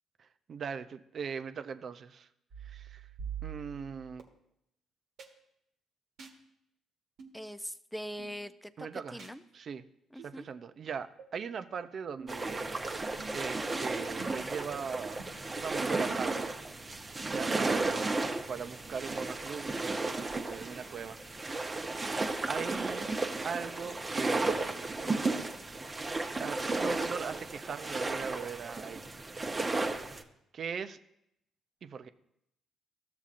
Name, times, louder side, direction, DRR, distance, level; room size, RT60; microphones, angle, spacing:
voice 1, 0.2-2.3 2.6-3.1 3.4-4.2 8.8-9.2 9.5-9.8 10.2-12.7 13.3-15.2 15.5-16.5 17.2-21.2 22.5-23.1 23.4-25.0 26.4-29.1 30.5-31.0 31.8-32.1, right 6 dB, 55° right, 11 dB, 0.5 m, -40 dB
sound 1, 2.5-4.2 5.2-5.3 6.2-6.4 7.2-7.4 8.2-8.4 9.2-9.4 10.2-10.3 11.2-11.3 12.2-12.5 13.2-13.5 14.2-14.6 15.2-15.3 16.2-16.3 17.2-17.3, right 7 dB, 70° right, 1.3 m, -45 dB
voice 2, 7.3-9.4 10.1-10.5, equal, ahead, 11 dB, 0.5 m, -42 dB
sound 2, 12.3-30.2, right 3 dB, 30° right, 0.9 m, -34 dB
14.0 x 7.0 x 2.5 m, 0.78 s
supercardioid pair, 60°, 0 cm